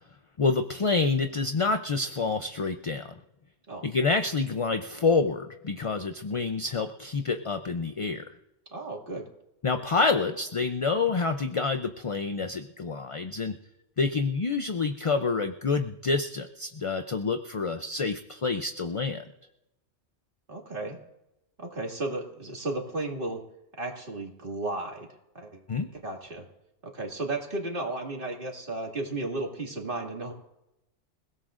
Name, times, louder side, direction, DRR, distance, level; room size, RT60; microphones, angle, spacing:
voice 1, 0.4-3.1 3.8-8.3 9.6-13.6 14.0-19.3 25.7-25.9, left 4 dB, 40° left, 7 dB, 0.5 m, -27 dB
voice 2, 8.7-9.3 20.5-21.0 21.6-23.4 23.8-25.1 25.3-25.6 25.9-26.5 26.8-30.3, right 2 dB, 50° right, 0 dB, 2.5 m, -34 dB
27.5 x 17.0 x 2.5 m, 0.90 s
omnidirectional pair, 1.2 m